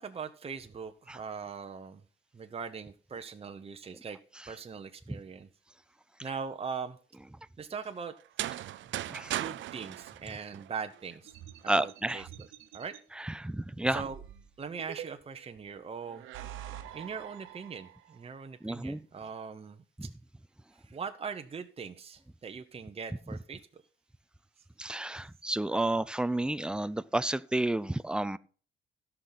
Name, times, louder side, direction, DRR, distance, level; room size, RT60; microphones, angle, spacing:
voice 1, 0.0-2.0 2.3-4.2 4.5-5.5 6.2-7.0 7.6-8.1 8.8-8.9 9.4-11.3 11.6-12.2 12.7-12.9 13.9-14.2 14.6-16.3 16.9-20.1 20.7-23.8, right 6 dB, 30° right, 0.9 m, -41 dB
sound 1, 8.2-11.1, right 14 dB, 70° right, 0.5 m, -37 dB
voice 2, 9.1-9.4 11.7-12.3 13.2-14.0 18.6-19.0 20.0-20.1 24.8-28.4, right 1 dB, 5° right, 0.5 m, -31 dB
sound 2, 11.3-13.0 13.9-15.4 16.1-18.2, right 11 dB, 85° right, 1.0 m, -46 dB
16.5 x 6.0 x 4.0 m
cardioid pair, 90°, 20 cm